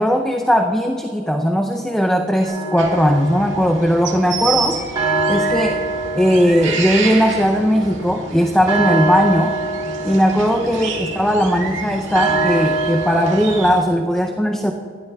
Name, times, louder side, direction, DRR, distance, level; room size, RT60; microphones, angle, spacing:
voice 1, 0.0-4.8 5.3-5.8 6.1-9.5 10.0-14.7, equal, 5° left, 2 dB, 0.5 m, -18 dB
sound 1, 2.4-13.7, right 2 dB, 25° right, 1.6 m, -25 dB
sound 2, 2.8-13.8, right 5 dB, 80° right, 1.7 m, -30 dB
19.5 x 13.0 x 2.3 m, 2.3 s
head